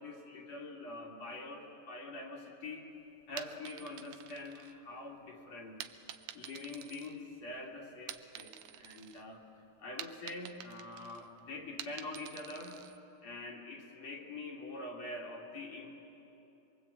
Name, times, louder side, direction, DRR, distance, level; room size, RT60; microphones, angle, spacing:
voice 1, 0.0-2.9 3.3-6.0 6.3-9.5 9.8-12.8 13.2-16.0, left 2 dB, 60° left, -1 dB, 3.6 m, -45 dB
sound 1, 3.2-5.2 5.8-7.6 7.9-9.2 9.6-13.0, right 11 dB, 80° right, 2.3 m, -48 dB
26.5 x 23.0 x 8.5 m, 3.0 s
omnidirectional pair, 3.6 m